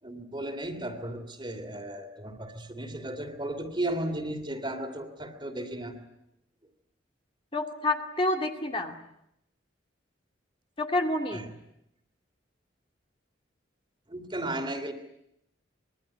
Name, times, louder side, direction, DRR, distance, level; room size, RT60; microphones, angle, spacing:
voice 1, 0.0-6.0 11.3-11.5 14.1-14.9, right 1 dB, 25° right, 7 dB, 2.9 m, -35 dB
voice 2, 7.5-8.9 10.8-11.5, left 2 dB, 30° left, 3 dB, 2.4 m, -28 dB
25.5 x 22.5 x 9.9 m, 0.81 s
head